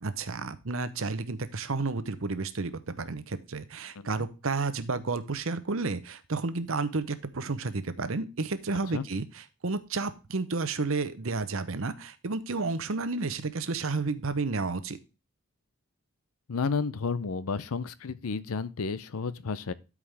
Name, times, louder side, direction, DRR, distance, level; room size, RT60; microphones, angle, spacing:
voice 1, 0.0-15.0, right 3 dB, 65° right, 0.8 m, -31 dB
voice 2, 16.5-19.7, left 5 dB, 80° left, 0.6 m, -31 dB
12.5 x 4.9 x 3.4 m
head